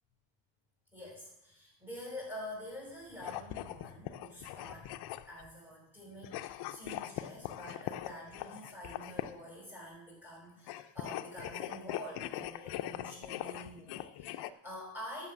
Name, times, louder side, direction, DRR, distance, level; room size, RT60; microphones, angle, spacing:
voice 1, 0.9-5.0 5.2-15.3, equal, 5° right, -3 dB, 4.6 m, -47 dB
sound 1, 3.2-5.5 6.2-9.5 10.6-14.5, left 13 dB, 55° left, 0.5 m, -41 dB
11.5 x 6.2 x 7.5 m, 0.83 s
cardioid pair, 145°, 47 cm